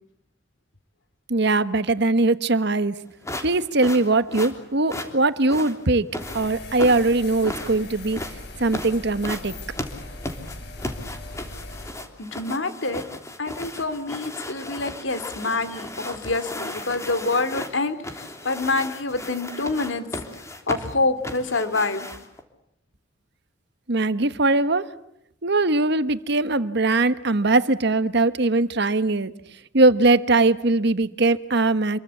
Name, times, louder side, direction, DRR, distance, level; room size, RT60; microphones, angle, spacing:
voice 1, 1.3-2.9 3.4-6.1 6.3-8.2 8.6-9.5 23.9-24.9 25.4-29.3 29.7-32.0, right 2 dB, 60° right, 1.3 m, -21 dB
sound 1, 3.2-22.4, left 1 dB, 15° left, 3.2 m, -35 dB
sound 2, 6.2-11.9, left 2 dB, 60° left, 4.5 m, -39 dB
voice 2, 12.2-13.0 13.4-20.1 20.7-22.1, left 3 dB, 80° left, 2.5 m, -26 dB
27.5 x 22.5 x 8.4 m
head